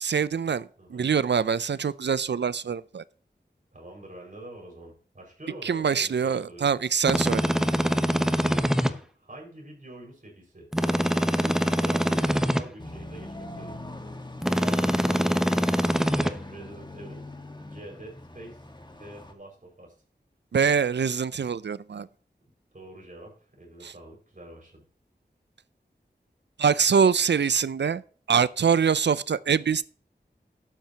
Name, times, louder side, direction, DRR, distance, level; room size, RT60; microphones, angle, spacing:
voice 1, 0.0-3.0 5.6-7.4 20.5-22.1 23.8-23.9 26.6-28.0 28.3-29.8, right 6 dB, 85° right, 0.5 m, -24 dB
voice 2, 0.8-1.1 3.7-6.7 8.4-10.7 11.1-13.8 14.6-15.6 16.1-17.3 17.6-19.9 22.7-24.8, right 1 dB, 50° right, 5.5 m, -46 dB
sound 1, 7.0-8.9 10.7-12.6 14.4-16.3, equal, 5° right, 0.9 m, -24 dB
sound 2, 12.8-19.3, left 1 dB, 25° left, 1.5 m, -41 dB
11.5 x 9.0 x 2.9 m
wide cardioid pair, 50°, 18 cm